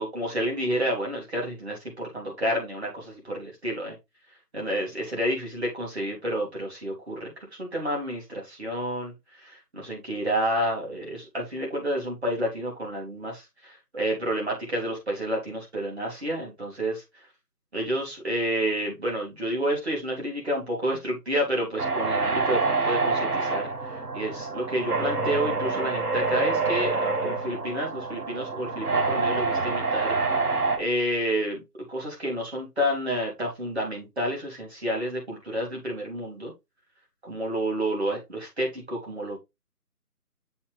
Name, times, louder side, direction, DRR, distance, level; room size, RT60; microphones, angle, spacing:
voice 1, 0.0-3.9 4.5-7.3 7.6-9.1 9.4-17.0 17.7-30.2 30.7-31.6 31.9-36.5 37.2-39.4, equal, 40° right, -2 dB, 3.4 m, -29 dB
sound 1, 21.8-30.8, right 3 dB, 70° right, 1.6 m, -26 dB
7.0 x 4.8 x 3.2 m, 0.22 s
figure-of-eight pair, 165°, 47 cm